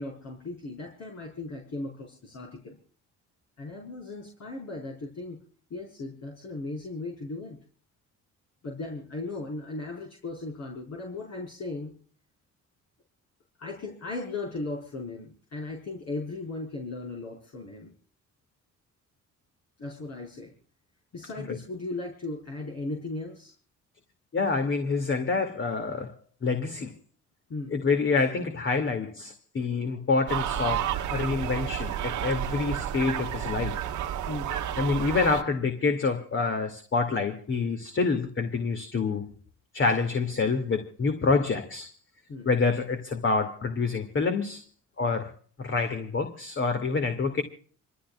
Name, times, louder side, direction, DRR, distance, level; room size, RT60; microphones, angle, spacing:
voice 1, 0.0-2.8 3.6-5.4 5.7-7.6 8.6-11.9 13.6-17.9 19.8-20.5 21.1-23.5 27.5-27.8 34.3-34.5 42.3-42.5, left 2 dB, 60° left, 4.9 m, -37 dB
voice 2, 24.3-26.1 26.4-26.9 27.7-33.8 34.8-39.3 39.7-41.9 42.5-44.6 45.0-45.3 45.6-47.4, left 4 dB, 40° left, 2.3 m, -27 dB
sound 1, 30.3-35.4, right 10 dB, 80° right, 1.5 m, -31 dB
28.0 x 14.0 x 2.3 m
cardioid pair, 90°, 30 cm